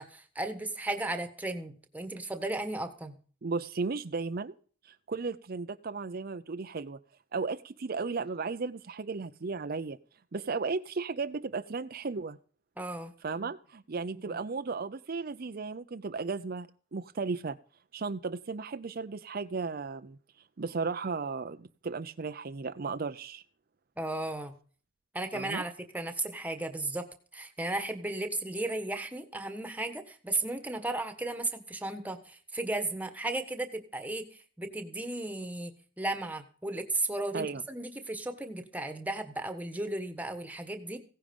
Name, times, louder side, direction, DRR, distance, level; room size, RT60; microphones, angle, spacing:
voice 1, 0.0-3.2 12.8-13.1 14.3-14.4 24.0-24.5 25.1-27.1 27.3-34.3 34.6-35.7 36.0-41.0, right 2 dB, 10° right, 8 dB, 1.4 m, -35 dB
voice 2, 3.4-4.6 4.8-7.0 7.3-10.0 10.3-12.4 13.2-17.6 17.9-20.2 20.6-23.4 25.3-25.6 37.3-37.6, right 4 dB, 50° right, 10 dB, 0.6 m, -35 dB
16.0 x 10.0 x 5.3 m, 0.42 s
head